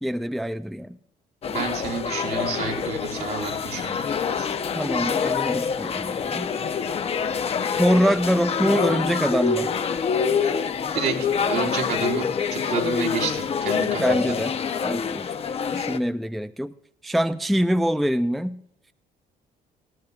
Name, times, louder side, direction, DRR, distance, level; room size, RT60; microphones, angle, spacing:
voice 1, 0.0-1.0 4.7-6.5 7.8-9.7 14.0-14.5 14.8-15.3 15.7-16.7 17.0-18.6, equal, ahead, 12 dB, 0.4 m, -24 dB
sound 1, 1.4-16.0, left 6 dB, 35° left, 0.8 m, -26 dB
voice 2, 1.5-4.0 4.3-4.5 10.9-12.2 12.5-14.3, right 6 dB, 70° right, 1 dB, 3.8 m, -30 dB
20.0 x 15.5 x 2.4 m, 0.74 s
cardioid pair, 110°, 17 cm